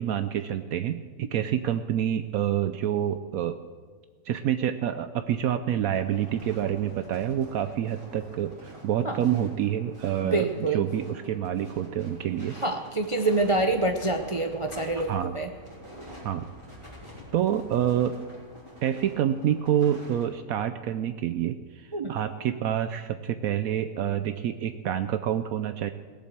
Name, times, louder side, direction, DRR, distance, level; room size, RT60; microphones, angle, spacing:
voice 1, 0.0-3.6 4.3-12.6 15.1-15.4 16.2-16.5 17.3-18.2 18.8-25.9, right 10 dB, 70° right, 11 dB, 1.0 m, -27 dB
sound 1, 5.9-20.3, equal, 20° right, 3.6 m, -47 dB
voice 2, 10.2-10.9 12.6-15.5 21.9-22.1, right 2 dB, 35° right, 5 dB, 0.5 m, -26 dB
17.5 x 7.6 x 7.3 m, 1.5 s
omnidirectional pair, 1.6 m